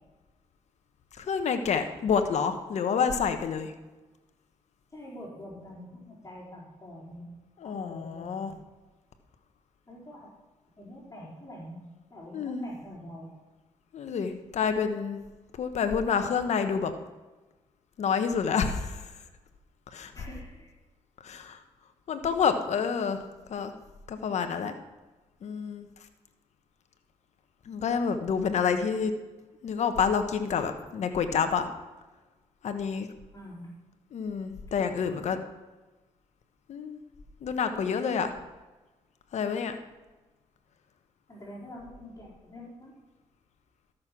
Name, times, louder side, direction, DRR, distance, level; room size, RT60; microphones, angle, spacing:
voice 1, 1.2-3.7 7.6-8.5 12.3-12.7 13.9-15.2 15.6-16.9 18.0-19.0 19.9-20.1 21.2-21.6 22.1-23.2 23.5-23.7 24.1-24.7 25.4-25.9 27.7-29.1 29.6-31.7 32.6-33.1 34.1-35.4 36.7-37.0 37.4-38.3 39.3-39.8, left 6 dB, 65° left, 8 dB, 1.1 m, -28 dB
voice 2, 4.9-7.3 7.6-8.5 9.9-10.3 10.8-11.8 12.1-13.3 20.1-20.7 33.3-33.7 41.3-42.9, equal, 25° left, -6 dB, 4.3 m, -45 dB
13.0 x 6.5 x 6.0 m, 1.2 s
cardioid pair, 70°, 12 cm